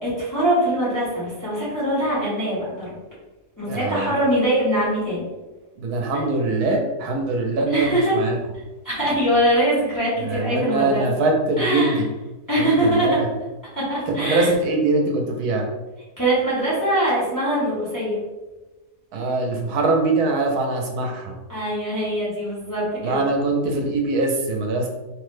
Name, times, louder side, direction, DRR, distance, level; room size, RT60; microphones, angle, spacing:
voice 1, 0.0-2.9 3.6-5.2 6.1-6.2 7.7-8.2 8.8-11.1 11.6-12.0 12.5-13.2 13.7-14.5 16.2-18.2 21.5-23.2, right 1 dB, 15° left, -9 dB, 0.9 m, -22 dB
voice 2, 3.6-4.1 5.8-8.4 10.2-12.0 12.6-13.3 14.2-15.7 19.1-21.3 23.0-24.9, right 2 dB, 85° right, 2 dB, 1.1 m, -22 dB
3.1 x 2.0 x 3.1 m, 1.1 s
omnidirectional pair, 1.6 m